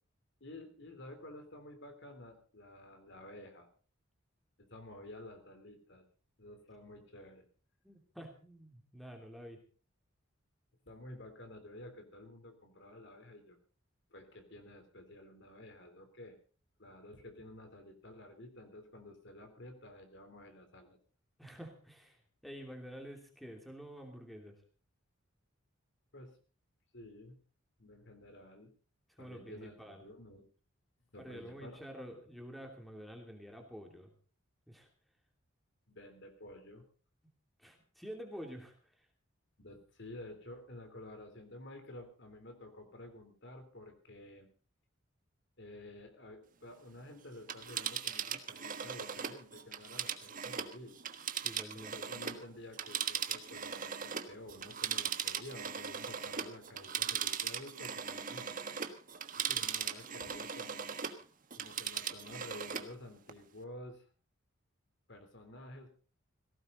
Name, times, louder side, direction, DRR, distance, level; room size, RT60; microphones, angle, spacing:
voice 1, 0.4-3.7 4.6-6.0 6.4-7.4 10.9-13.6 14.1-16.4 16.8-21.0 26.1-26.4 26.9-27.4 27.8-28.7 29.2-30.5 31.1-31.8 35.9-36.8 39.6-44.5 45.6-51.0 51.7-58.6 59.5-60.9 61.6-64.1 65.1-65.9, left 1 dB, 60° left, 7 dB, 3.5 m, -51 dB
voice 2, 7.8-9.6 21.4-24.6 29.1-30.0 31.2-34.1 34.7-34.9 37.6-39.1 51.4-51.9 59.4-59.7, equal, ahead, 3 dB, 2.9 m, -49 dB
Telephone, 47.4-52.4 52.7-61.2 61.5-62.9 63.3-63.4, right 8 dB, 40° right, 1.4 m, -39 dB
18.5 x 17.0 x 4.0 m, 0.36 s
head